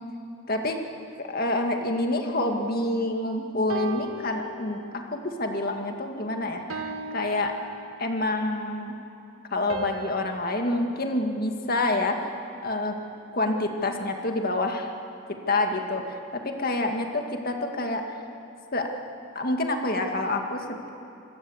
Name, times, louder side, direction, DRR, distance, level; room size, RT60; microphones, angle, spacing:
voice 1, 0.5-0.8 1.2-7.6 8.0-8.9 9.5-12.3 12.6-12.9 13.3-14.9 15.3-18.0 18.7-18.9 19.4-20.9, left 2 dB, 45° left, 3 dB, 2.1 m, -27 dB
sound 1, 3.7-5.2 5.7-6.0 6.7-8.4 9.7-12.1, right 2 dB, 80° right, 1.8 m, -39 dB
26.5 x 21.5 x 8.1 m, 2.8 s
head